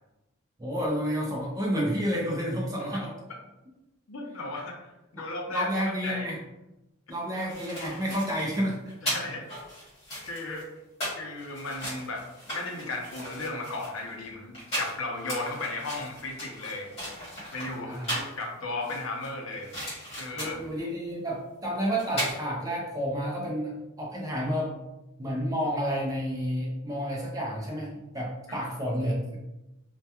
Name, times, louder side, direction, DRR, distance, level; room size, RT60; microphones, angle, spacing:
voice 1, 0.6-3.1 5.1-5.2 5.5-6.4 7.1-8.8 17.8-18.2 20.3-24.7 25.2-29.4, equal, 15° right, -2 dB, 0.4 m, -30 dB
voice 2, 4.1-5.7 6.0-6.3 9.0-9.5 10.2-10.7 11.2-16.9 17.5-19.7 20.2-20.6 28.5-28.7, left 2 dB, 75° left, 1 dB, 0.5 m, -35 dB
sound 1, 7.1-18.4 18.8-20.7 21.7-21.8 22.0-22.3, equal, 30° left, 1.3 m, -37 dB
2.2 x 2.2 x 2.8 m, 0.96 s
head